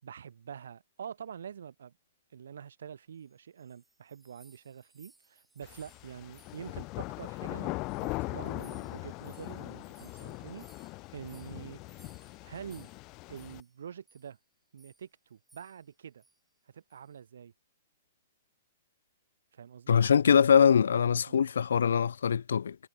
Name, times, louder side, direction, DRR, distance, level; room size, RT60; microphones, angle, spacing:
voice 1, 0.0-1.9 2.3-11.8 12.4-12.9 13.3-14.4 14.7-16.2 16.7-17.5 19.5-20.0 21.3-21.4, right 8 dB, 75° right, 5.5 m, -46 dB
sound 1, 3.3-7.6 7.8-13.8 14.1-14.3 14.8-15.1 15.5-15.9 16.2-16.4 16.9-17.2, right 2 dB, 5° right, 6.6 m, -64 dB
sound 2, 5.6-13.6, left 24 dB, 35° left, 0.7 m, -40 dB
voice 2, 19.9-22.8, left 7 dB, 80° left, 0.6 m, -23 dB
hypercardioid pair, 125°, 0 cm